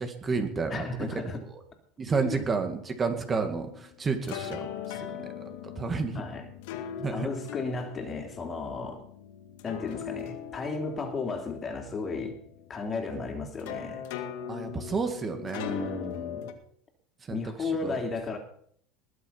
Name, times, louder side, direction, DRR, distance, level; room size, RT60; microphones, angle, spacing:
voice 1, 0.0-0.9 1.1-1.2 1.5-1.6 2.0-5.1 5.8-6.2 7.0-7.3 14.5-15.7 17.3-18.0, right 4 dB, 25° right, 6 dB, 2.2 m, -31 dB
voice 2, 0.7-1.4 2.1-2.5 6.1-6.4 7.1-9.0 9.6-12.4 12.7-14.0 15.7-16.5 17.3-18.4, left 3 dB, 25° left, 4 dB, 3.2 m, -34 dB
sound 1, 3.2-16.5, left 9 dB, 75° left, 2.0 m, -40 dB
21.0 x 7.6 x 5.8 m, 0.63 s
supercardioid pair, 115°, 0 cm